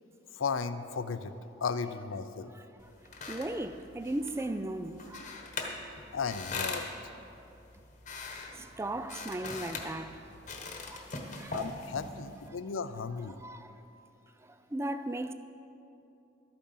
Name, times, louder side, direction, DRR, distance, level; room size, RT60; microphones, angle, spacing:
voice 1, 0.3-1.3 1.6-2.5 6.1-6.9 11.5-13.4, left 5 dB, 85° left, 0.5 m, -35 dB
sound 1, 2.8-12.5, left 3 dB, 40° left, 1.2 m, -42 dB
voice 2, 3.3-5.3 8.5-10.2 10.9-11.0 11.3-11.6 13.4-13.8 14.4-15.3, right 1 dB, 15° right, 0.3 m, -37 dB
12.5 x 8.7 x 5.5 m
head